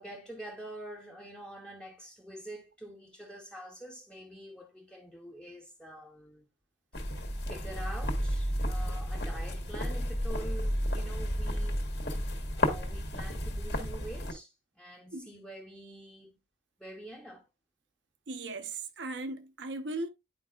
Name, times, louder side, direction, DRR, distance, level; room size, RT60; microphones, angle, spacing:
voice 1, 0.0-6.5 7.5-11.8 12.6-16.3 16.8-17.4, right 1 dB, 5° left, 0.8 m, -46 dB
sound 1, 6.9-14.3, equal, 60° left, 1.7 m, -32 dB
voice 2, 18.3-20.1, right 2 dB, 80° right, 0.9 m, -37 dB
10.5 x 4.8 x 2.4 m
head